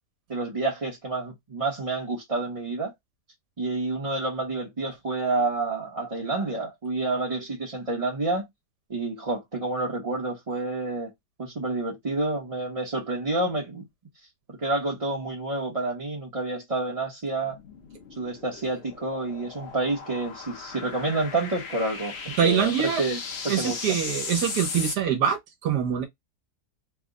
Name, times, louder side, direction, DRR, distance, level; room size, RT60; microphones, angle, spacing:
voice 1, 0.3-2.9 3.6-8.5 8.9-11.1 11.4-13.8 14.6-17.6 18.2-22.7 23.0-23.2 23.4-24.0, right 2 dB, 30° right, 0.7 m, -29 dB
sound 1, 17.4-25.0, left 5 dB, 50° left, 0.8 m, -36 dB
voice 2, 22.4-23.0 23.5-26.0, right 8 dB, 85° right, 1.4 m, -24 dB
3.3 x 2.1 x 3.6 m
omnidirectional pair, 1.7 m